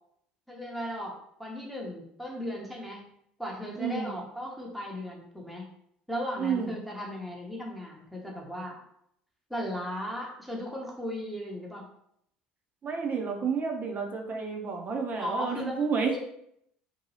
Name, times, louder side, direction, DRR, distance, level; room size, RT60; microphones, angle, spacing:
voice 1, 0.5-3.1 3.4-5.7 6.1-8.8 9.5-11.9 15.2-15.8 16.1-16.2, equal, ahead, -2 dB, 0.8 m, -36 dB
voice 2, 3.8-4.2 6.4-6.8 12.8-16.1, right 5 dB, 35° right, 2 dB, 0.6 m, -30 dB
2.7 x 2.2 x 3.0 m, 0.73 s
figure-of-eight pair, 60°, 5 cm